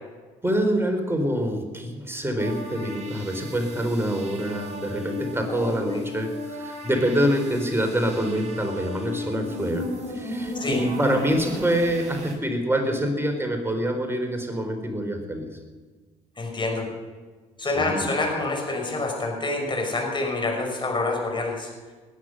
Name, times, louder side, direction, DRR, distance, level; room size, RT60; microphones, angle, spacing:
voice 1, 0.4-15.5 17.6-18.1, equal, 15° right, 4 dB, 4.3 m, -26 dB
sound 1, 2.4-12.3, left 2 dB, 40° right, 6.5 m, -35 dB
voice 2, 5.5-6.0 10.5-10.8 16.4-16.9 17.6-21.7, left 2 dB, 25° left, 0 dB, 6.2 m, -27 dB
19.5 x 10.5 x 6.6 m, 1.4 s
hypercardioid pair, 55°, 18 cm